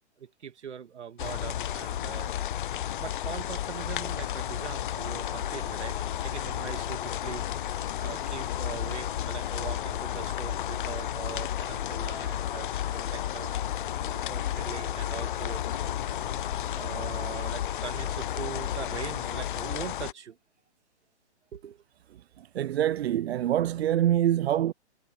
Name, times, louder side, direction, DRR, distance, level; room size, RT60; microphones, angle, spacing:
voice 1, 0.2-2.3 3.0-13.5 14.1-15.6 16.8-20.4 21.5-21.8, right 8 dB, 85° right, 2.7 m, -41 dB
sound 1, 1.2-20.1, left 11 dB, 50° left, 0.5 m, -32 dB
Piano, 4.4-17.4, right 15 dB, 40° right, 4.6 m, -55 dB
voice 2, 22.4-24.7, right 12 dB, 65° right, 0.5 m, -25 dB
hypercardioid pair, 155°, 34 cm